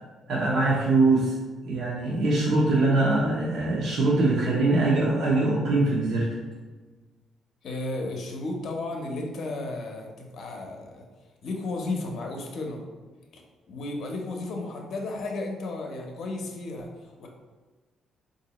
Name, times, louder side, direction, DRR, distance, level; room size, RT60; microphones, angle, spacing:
voice 1, 0.3-1.3 1.6-6.3, right 2 dB, 70° right, -5 dB, 0.6 m, -22 dB
voice 2, 7.6-11.0 11.4-12.8 13.3-13.4 13.7-17.3, left 2 dB, 65° left, 1 dB, 0.6 m, -33 dB
3.8 x 2.6 x 2.9 m, 1.3 s
cardioid pair, 90°, 0 cm